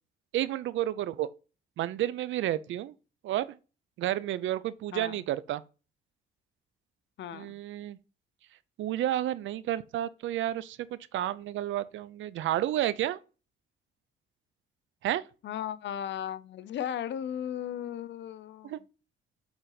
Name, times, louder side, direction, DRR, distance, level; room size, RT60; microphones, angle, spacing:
voice 1, 0.3-1.3 1.8-2.9 3.2-3.6 4.0-5.6 7.3-8.0 8.8-13.2 15.0-15.2 18.6-18.8, right 13 dB, 75° right, 0.6 m, -31 dB
voice 2, 7.2-7.6 15.4-18.8, left 10 dB, 65° left, 0.7 m, -36 dB
7.8 x 4.1 x 3.9 m
cardioid pair, 90°, 20 cm